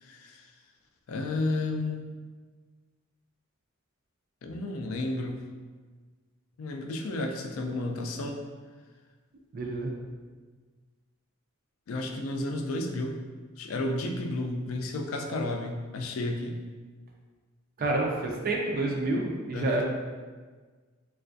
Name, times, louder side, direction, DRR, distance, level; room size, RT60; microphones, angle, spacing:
voice 1, 0.0-0.4 1.1-2.0 4.4-5.4 6.6-8.4 11.9-13.2 13.6-16.6 19.5-19.8, left 2 dB, 75° left, 3 dB, 0.4 m, -32 dB
voice 2, 9.5-9.9 17.8-19.8, right 2 dB, 45° right, 0 dB, 0.4 m, -28 dB
3.2 x 2.3 x 2.6 m, 1.4 s
head